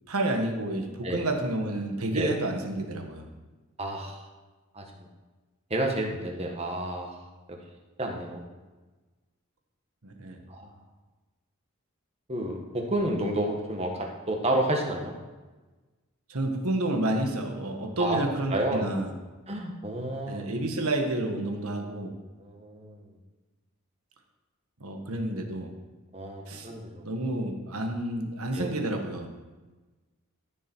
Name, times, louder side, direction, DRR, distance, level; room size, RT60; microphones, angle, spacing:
voice 1, 0.1-3.3 10.0-10.4 16.3-19.1 20.3-22.1 24.8-25.7 26.5-26.7 27.0-29.3, right 1 dB, 80° right, 4 dB, 1.5 m, -30 dB
voice 2, 3.8-4.2 4.7-4.8 5.7-7.1 8.0-8.4 10.5-10.6 12.3-15.1 18.0-18.2 18.5-18.9 19.5-20.5 22.4-23.0 26.1-27.0 28.5-28.7, right 1 dB, 30° right, 1 dB, 1.5 m, -30 dB
14.5 x 6.6 x 4.6 m, 1.2 s
head